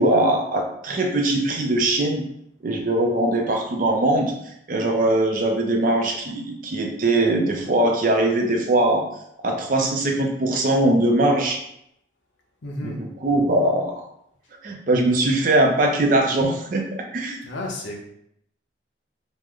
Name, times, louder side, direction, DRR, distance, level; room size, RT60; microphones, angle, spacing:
voice 1, 0.0-2.2 2.6-4.3 4.7-9.1 9.4-11.6 12.8-14.0 14.6-16.8 17.1-17.4, right 1 dB, 45° right, 2 dB, 0.5 m, -21 dB
voice 2, 12.6-13.0 17.4-18.0, left 1 dB, 80° left, 0 dB, 0.7 m, -32 dB
3.1 x 2.1 x 3.6 m, 0.74 s
head